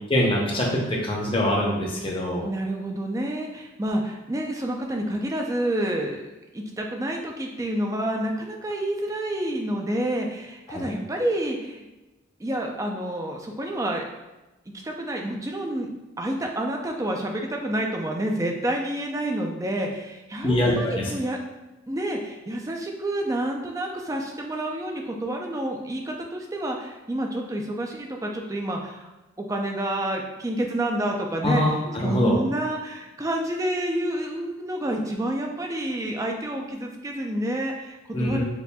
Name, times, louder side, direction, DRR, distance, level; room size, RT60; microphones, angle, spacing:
voice 1, 0.1-2.5 10.7-10.9 20.4-21.0 31.4-31.7 31.9-32.4 38.1-38.4, left 1 dB, 25° left, -2 dB, 0.7 m, -23 dB
voice 2, 2.4-6.2 6.5-11.8 12.4-14.0 14.8-15.9 16.2-21.4 21.9-29.1 29.4-38.4, right 1 dB, 15° right, 1 dB, 0.4 m, -29 dB
6.8 x 2.5 x 2.2 m, 1.1 s
head